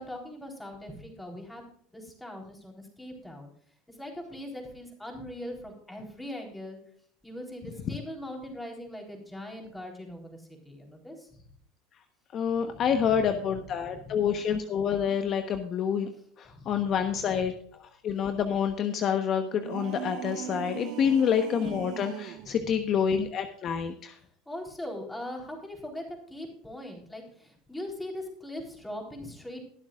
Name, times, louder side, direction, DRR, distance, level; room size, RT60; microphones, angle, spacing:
voice 1, 0.0-3.5 3.9-6.8 7.2-11.4 12.6-13.3 13.8-14.5 16.5-16.9 21.1-21.2 22.4-22.8 24.5-29.6, left 1 dB, 5° left, 1 dB, 3.9 m, -41 dB
voice 2, 12.3-16.1 16.4-24.2, left 7 dB, 40° left, 7 dB, 1.1 m, -28 dB
sound 1, 19.6-22.5, right 12 dB, 65° right, 1.0 m, -39 dB
22.0 x 7.4 x 2.5 m, 0.62 s
supercardioid pair, 115°, 0 cm